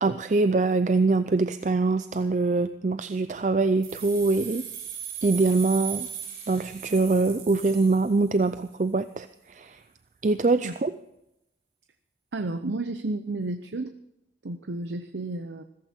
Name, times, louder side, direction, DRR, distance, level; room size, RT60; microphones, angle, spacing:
voice 1, 0.0-4.6 5.2-6.1 6.5-9.8 10.2-10.9, right 3 dB, 40° right, 11 dB, 0.4 m, -24 dB
sound 1, 3.8-8.6, right 9 dB, 60° right, 5.6 m, -38 dB
voice 2, 12.3-13.9 14.4-15.6, right 2 dB, 85° right, 9 dB, 0.7 m, -32 dB
15.5 x 14.5 x 4.4 m, 0.85 s
head